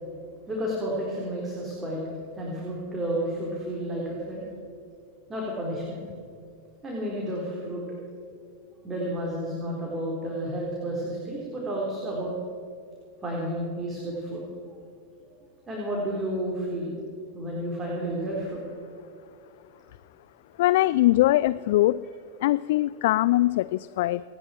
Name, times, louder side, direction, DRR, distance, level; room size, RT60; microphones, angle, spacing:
voice 1, 0.5-2.0 2.4-4.5 5.3-6.0 6.8-7.8 8.8-12.3 13.2-14.4 15.7-16.9 17.3-18.6, right 1 dB, 20° right, -4 dB, 4.4 m, -31 dB
voice 2, 20.6-22.0 22.4-24.2, left 16 dB, 65° left, 17 dB, 0.3 m, -22 dB
28.5 x 11.0 x 4.6 m, 2.4 s
hypercardioid pair, 95°, 0 cm